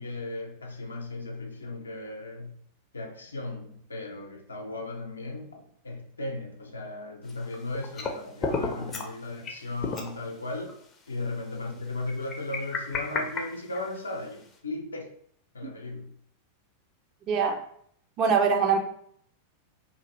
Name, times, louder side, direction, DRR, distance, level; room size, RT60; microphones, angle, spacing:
voice 1, 0.0-2.5 2.9-10.7 11.1-15.1 15.5-16.1, left 2 dB, 75° left, 2 dB, 0.5 m, -36 dB
sound 1, 7.3-8.1 8.4-9.1 9.4-9.5 9.8-10.1 10.7-10.8 12.1-14.2, left 4 dB, 25° left, 0.5 m, -32 dB
voice 2, 17.3-17.6 18.2-18.8, right 6 dB, 35° right, 4 dB, 0.5 m, -22 dB
2.6 x 2.5 x 2.9 m, 0.64 s
figure-of-eight pair, 90°, 0 cm